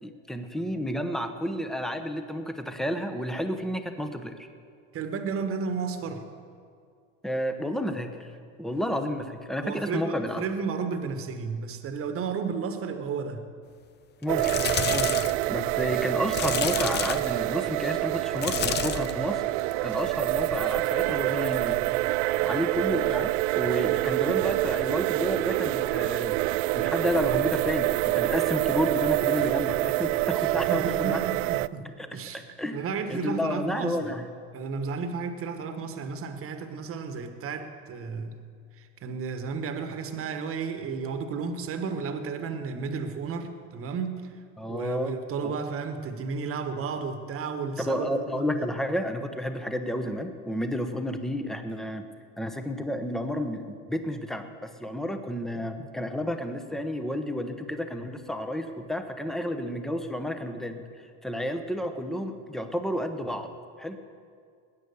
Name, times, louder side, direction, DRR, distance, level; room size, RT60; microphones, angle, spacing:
voice 1, 0.0-4.5 7.2-8.3 8.6-10.4 14.2-14.6 14.9-15.2 15.5-19.5 19.8-22.0 22.4-26.4 26.7-31.2 32.0-32.1 32.3-32.8 33.1-34.3 44.6-45.1 45.4-45.6 47.9-52.1 52.4-60.8 61.2-63.5 63.8-64.0, equal, ahead, 7 dB, 0.9 m, -31 dB
voice 2, 4.9-6.2 9.6-13.5 30.4-31.8 32.1-32.4 32.7-34.1 34.5-38.4 38.8-44.3 44.7-48.8, right 5 dB, 35° right, 8 dB, 1.4 m, -33 dB
sound 1, 14.2-15.4 16.3-17.4 18.4-19.2 19.6-19.9 21.5-21.6, left 9 dB, 25° left, 0.6 m, -30 dB
sound 2, 14.3-31.7, right 18 dB, 65° right, 0.5 m, -26 dB
20.0 x 9.3 x 6.9 m, 2.3 s
supercardioid pair, 140°, 41 cm